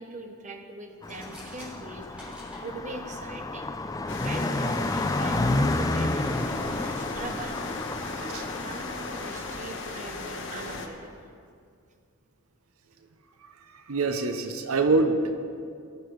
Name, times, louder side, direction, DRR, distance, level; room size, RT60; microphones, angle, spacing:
voice 1, 0.0-2.3 2.6-3.7 4.2-7.6 8.2-8.3 8.6-11.3 14.0-14.1, right 2 dB, 35° right, 4 dB, 0.9 m, -41 dB
sound 1, 0.9-2.6, left 1 dB, 5° right, 3.4 m, -47 dB
Car passing by, 1.0-9.6, left 2 dB, 15° left, 0.4 m, -30 dB
sound 2, 4.1-10.9, left 3 dB, 60° left, 1.1 m, -37 dB
voice 2, 13.4-15.4, right 3 dB, 85° right, 7 dB, 0.8 m, -26 dB
19.0 x 6.8 x 4.8 m, 2.3 s
head